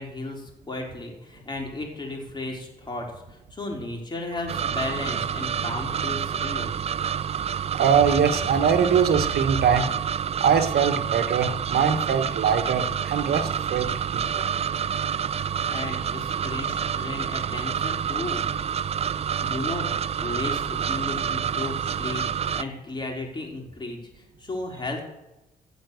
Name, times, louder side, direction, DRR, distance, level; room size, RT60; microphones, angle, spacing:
voice 1, 0.0-6.7 15.7-18.4 19.4-24.0 24.4-25.0, left 2 dB, 30° left, 0 dB, 3.8 m, -34 dB
sound 1, 4.5-22.6, right 8 dB, 40° right, 0.4 m, -28 dB
voice 2, 7.7-9.9 10.4-14.5, right 7 dB, 75° right, 7 dB, 1.1 m, -22 dB
15.5 x 5.3 x 8.0 m, 0.99 s
cardioid pair, 90°, 16 cm